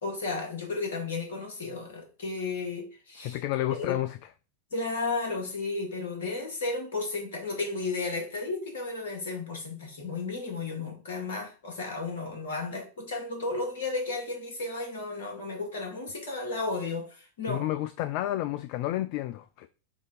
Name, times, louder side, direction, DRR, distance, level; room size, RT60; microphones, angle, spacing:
voice 1, 0.0-3.4 3.8-4.0 4.7-17.6, left 3 dB, 60° left, 2.2 m, -33 dB
voice 2, 3.2-4.2 17.5-19.7, left 14 dB, 45° left, 0.3 m, -30 dB
7.1 x 2.8 x 5.0 m
figure-of-eight pair, 90°, 0 cm